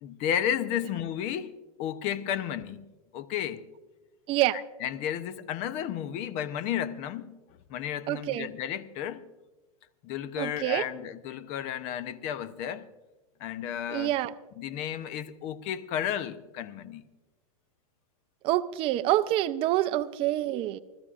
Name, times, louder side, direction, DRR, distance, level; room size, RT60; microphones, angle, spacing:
voice 1, 0.0-1.5 1.8-3.7 4.5-7.4 7.7-9.3 10.0-12.9 13.4-14.1 14.6-17.0, left 10 dB, 35° left, 0.7 m, -33 dB
voice 2, 4.3-4.6 8.1-8.5 10.4-10.9 13.9-14.3 18.4-20.8, right 15 dB, 30° right, 0.5 m, -27 dB
29.0 x 14.0 x 2.5 m
supercardioid pair, 150°, 19 cm